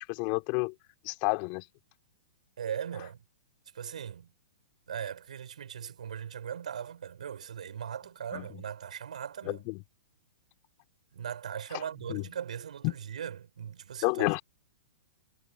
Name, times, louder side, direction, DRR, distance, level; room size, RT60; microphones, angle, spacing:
voice 1, 0.1-0.7 1.0-1.6 8.3-8.6 9.5-9.8 12.1-12.2 12.8-12.9 14.0-14.4, left 35 dB, 40° left, 4.1 m, -30 dB
voice 2, 2.6-3.2 3.7-4.3 4.9-9.6 11.1-14.3, right 8 dB, 70° right, 4.8 m, -39 dB
figure-of-eight pair, 110°, 4 cm